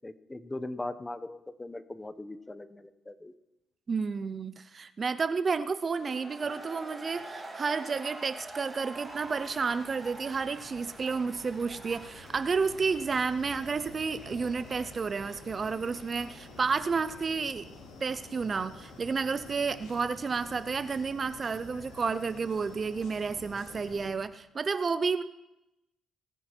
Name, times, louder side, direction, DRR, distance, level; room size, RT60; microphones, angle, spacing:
voice 1, 0.0-3.3, left 2 dB, 15° left, 13 dB, 0.8 m, -40 dB
voice 2, 3.9-17.7 18.0-25.2, right 5 dB, 35° right, 13 dB, 0.6 m, -31 dB
sound 1, 5.8-17.5, right 2 dB, 15° right, 3.0 m, -47 dB
sound 2, 8.2-24.1, left 2 dB, 90° left, 4.2 m, -50 dB
20.0 x 9.2 x 4.4 m, 0.92 s
cardioid pair, 105°, 0 cm